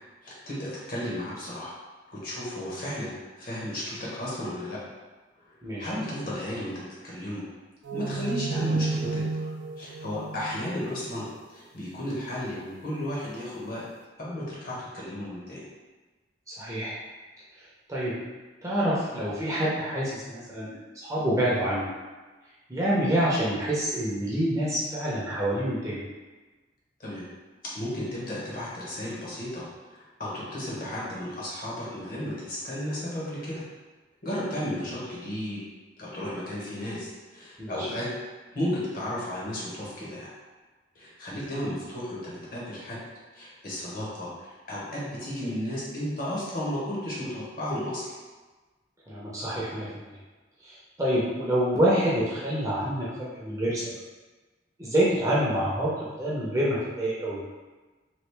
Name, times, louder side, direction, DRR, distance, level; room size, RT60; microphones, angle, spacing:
voice 1, 0.2-1.7 2.1-4.8 5.5-7.4 7.9-9.3 9.8-13.8 14.2-15.6 27.0-27.3 27.6-33.6 34.2-35.6 36.0-38.1 38.5-40.3 40.9-43.0 43.3-48.1, left 1 dB, 50° left, -7 dB, 1.0 m, -34 dB
sound 1, 7.9-11.3, right 3 dB, 75° right, 0.3 m, -31 dB
voice 2, 16.5-16.9 17.9-18.1 18.6-21.9 22.7-26.0 37.6-37.9 49.1-50.1 50.6-53.9 54.8-57.4, right 1 dB, 15° right, -7 dB, 0.6 m, -27 dB
3.0 x 2.5 x 3.2 m, 1.3 s
head